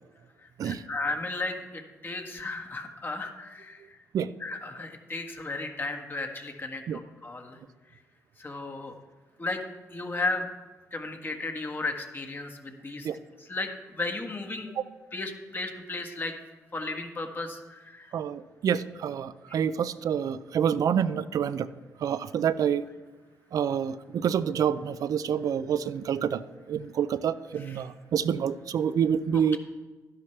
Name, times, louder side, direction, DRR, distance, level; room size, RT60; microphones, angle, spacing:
voice 1, 0.4-4.0 4.4-7.6 8.4-8.9 9.4-9.6 9.9-10.5 10.9-13.1 13.5-14.7 15.1-16.3 16.7-18.1 19.5-19.6 27.7-27.8, left 3 dB, 35° left, 3 dB, 1.6 m, -34 dB
voice 2, 18.1-21.7 22.0-22.9 23.5-26.4 26.7-29.6, right 8 dB, 70° right, 15 dB, 0.5 m, -27 dB
12.0 x 10.5 x 3.3 m, 1.2 s
cardioid pair, 70°, 6 cm